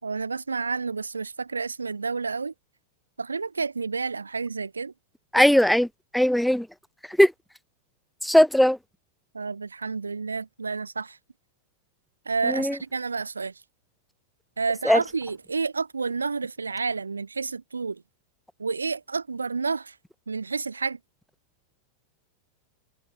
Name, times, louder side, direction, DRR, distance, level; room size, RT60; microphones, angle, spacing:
voice 1, 0.0-2.5 3.2-4.9 9.3-11.2 12.2-13.6 14.6-18.0 18.6-20.0 20.3-21.0, right 4 dB, 75° right, 3.0 m, -30 dB
voice 2, 5.3-5.9 6.1-6.6 7.2-7.3 8.2-8.8 14.9-15.0, equal, ahead, 0.8 m, -18 dB
figure-of-eight pair, 90°, 0 cm